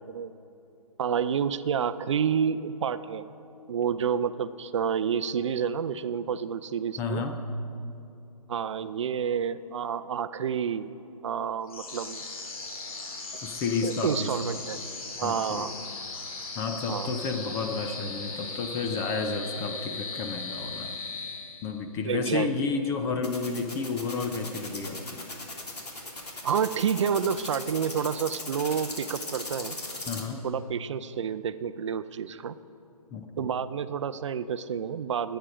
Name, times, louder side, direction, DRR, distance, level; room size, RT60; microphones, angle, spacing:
voice 1, 1.0-3.3 3.7-7.2 8.5-10.9 11.2-12.2 13.8-14.8 15.2-15.7 16.9-17.1 22.0-22.7 26.4-29.8 30.4-32.6 33.4-35.4, right 7 dB, 50° right, 12 dB, 0.5 m, -29 dB
voice 2, 7.0-7.4 13.4-14.3 15.2-15.7 16.6-21.0 21.6-25.3 30.1-30.4 33.1-33.5, left 4 dB, 15° left, 6 dB, 0.5 m, -31 dB
sound 1, 11.7-21.9, left 3 dB, 65° left, 2.6 m, -38 dB
sound 2, 23.2-30.2, left 2 dB, 90° left, 3.1 m, -38 dB
20.5 x 9.0 x 5.0 m, 2.7 s
hypercardioid pair, 150°, 20 cm